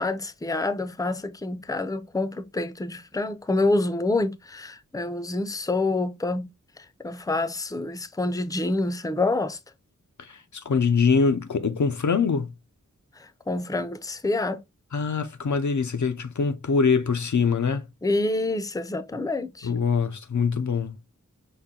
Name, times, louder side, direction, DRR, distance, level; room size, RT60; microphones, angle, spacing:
voice 1, 0.0-6.5 7.0-9.6 13.2-14.6 18.0-19.7, left 2 dB, 10° left, 0.5 m, -27 dB
voice 2, 10.2-12.5 14.9-17.8 19.6-20.9, left 5 dB, 65° left, 0.6 m, -24 dB
5.7 x 2.2 x 3.6 m
wide cardioid pair, 50°, 32 cm